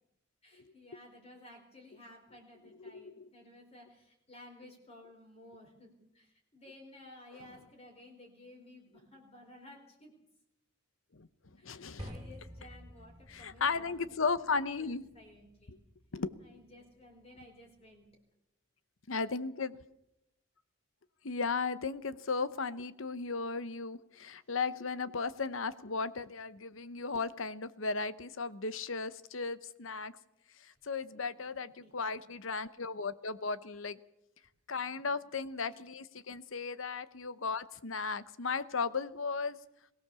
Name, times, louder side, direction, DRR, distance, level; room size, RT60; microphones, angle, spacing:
voice 1, 0.4-10.1 11.6-14.0 14.4-15.8 16.4-18.1 31.1-32.2 32.5-32.6 34.4-34.5 34.9-35.0, left 1 dB, 30° left, 0 dB, 4.0 m, -56 dB
voice 2, 2.8-3.3 11.1-11.3 11.6-12.1 13.3-15.0 15.7-15.8 16.1-16.4 19.1-19.7 21.2-30.1 30.6-34.0 34.7-39.6, left 4 dB, 80° left, 14 dB, 0.9 m, -36 dB
sound 1, 12.0-18.1, equal, 20° right, 3.4 m, -52 dB
22.5 x 17.5 x 7.0 m, 0.85 s
head